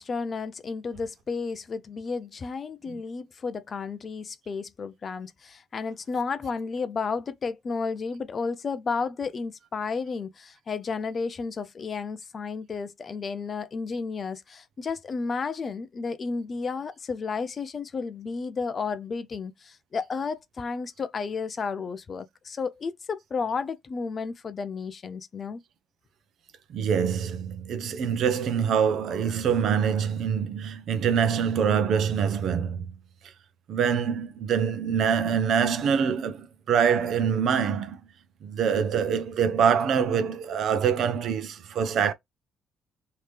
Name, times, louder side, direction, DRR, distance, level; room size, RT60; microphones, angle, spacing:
voice 1, 0.0-25.6, left 5 dB, 30° left, 0.3 m, -32 dB
voice 2, 26.7-32.9 33.7-38.0 38.4-42.1, right 7 dB, 50° right, 0.6 m, -25 dB
3.3 x 2.8 x 3.2 m
cardioid pair, 180°, 0 cm